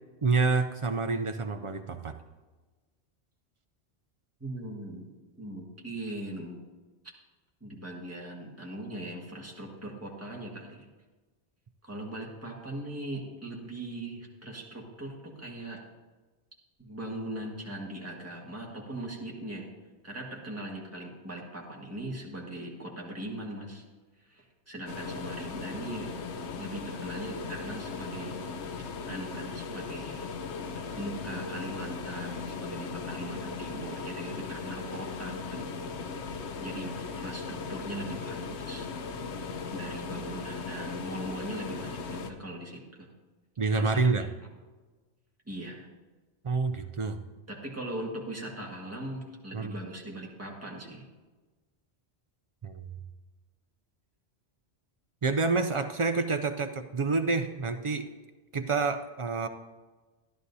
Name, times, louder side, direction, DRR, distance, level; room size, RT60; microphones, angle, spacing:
voice 1, 0.2-2.2 43.6-44.3 46.4-47.2 49.5-49.7 52.6-52.9 55.2-58.1 58.5-59.5, right 4 dB, 55° right, 8 dB, 0.3 m, -28 dB
voice 2, 4.4-5.1 5.4-6.6 7.6-10.9 11.8-15.8 16.8-19.7 20.0-23.8 24.2-26.2 26.6-28.4 29.1-30.3 31.0-35.7 36.0-36.3 36.6-38.9 39.7-43.1 43.7-44.3 45.5-45.9 47.5-51.1, right 1 dB, 15° right, -2 dB, 1.6 m, -40 dB
sound 1, 24.9-42.3, left 4 dB, 80° left, 1.0 m, -38 dB
13.5 x 11.5 x 2.7 m, 1.3 s
omnidirectional pair, 1.1 m